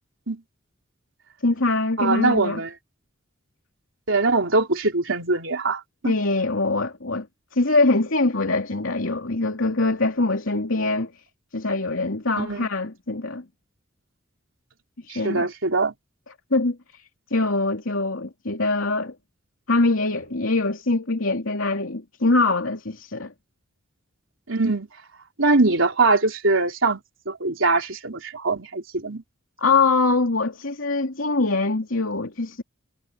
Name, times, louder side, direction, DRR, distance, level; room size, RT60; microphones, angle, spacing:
voice 1, 1.4-2.6 6.0-7.3 7.5-11.2 11.5-13.4 15.0-15.5 16.5-19.1 19.7-23.3 29.6-32.6, left 3 dB, 75° left, 2.9 m, -23 dB
voice 2, 2.0-2.7 4.1-6.1 12.4-12.7 15.1-15.9 24.5-24.9 25.4-29.2, right 3 dB, 70° right, 3.6 m, -22 dB
head